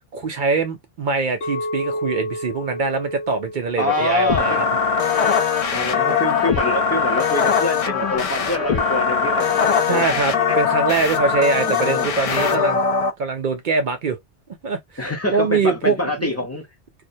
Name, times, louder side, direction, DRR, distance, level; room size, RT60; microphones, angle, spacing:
voice 1, 0.1-4.7 9.9-12.8 13.2-14.2 14.6-16.3, right 4 dB, 55° right, 0.6 m, -23 dB
Chink clink, 1.4-5.7, left 1 dB, 90° left, 1.0 m, -32 dB
Trumpet, 3.8-10.0, left 3 dB, 35° left, 0.9 m, -36 dB
voice 2, 3.8-4.7 5.7-10.6 11.6-12.1 15.0-16.6, left 1 dB, 20° left, 0.5 m, -25 dB
sound 1, 4.3-13.1, left 6 dB, 65° left, 0.3 m, -21 dB
2.3 x 2.1 x 2.6 m
omnidirectional pair, 1.1 m